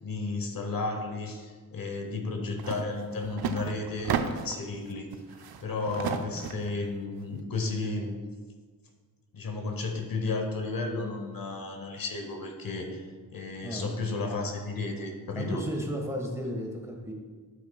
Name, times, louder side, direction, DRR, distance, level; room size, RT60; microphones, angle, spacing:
voice 1, 0.0-5.1 5.6-8.1 9.3-15.6, left 3 dB, 70° left, 3 dB, 1.0 m, -33 dB
sound 1, 2.6-2.8 3.1-4.7 5.1-6.7, right 7 dB, 85° right, 0.5 m, -33 dB
voice 2, 15.3-17.1, equal, 10° right, 0 dB, 1.5 m, -33 dB
11.5 x 5.0 x 2.3 m, 1.5 s
cardioid pair, 65°, 36 cm